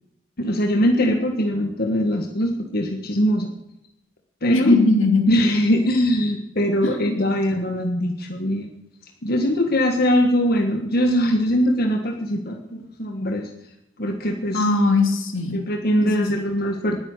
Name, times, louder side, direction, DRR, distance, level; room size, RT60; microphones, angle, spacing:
voice 1, 0.4-3.5 4.4-4.7 5.3-8.7 9.2-13.5 14.0-14.6 15.5-17.0, equal, 50° left, 3 dB, 1.5 m, -21 dB
voice 2, 4.5-5.3 6.8-7.4 14.5-15.6 16.0-16.2, left 2 dB, 80° left, 4 dB, 2.9 m, -20 dB
20.0 x 9.7 x 6.6 m, 0.85 s
head